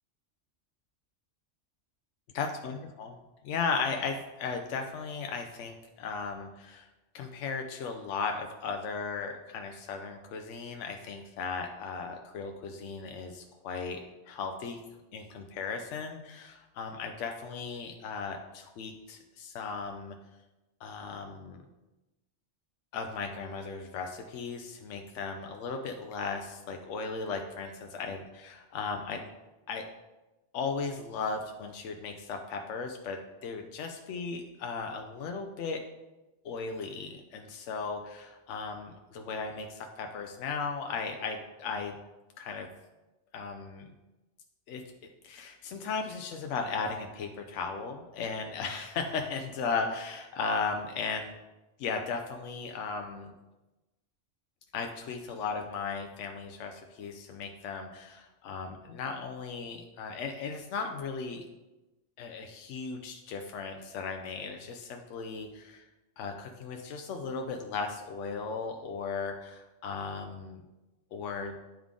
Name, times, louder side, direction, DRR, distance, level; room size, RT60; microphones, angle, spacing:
voice 1, 2.3-3.2 3.4-6.9 7.1-14.0 14.3-14.8 15.1-20.1 20.8-21.6 22.9-29.3 29.7-29.8 30.5-35.8 36.4-42.0 42.4-42.7 43.3-43.9 44.7-44.8 45.2-51.3 51.8-53.3 54.7-61.5 62.2-65.8 66.2-70.6 71.1-71.5, left 5 dB, 80° left, 4 dB, 0.9 m, -36 dB
10.0 x 3.6 x 3.6 m, 1.1 s
omnidirectional pair, 1.2 m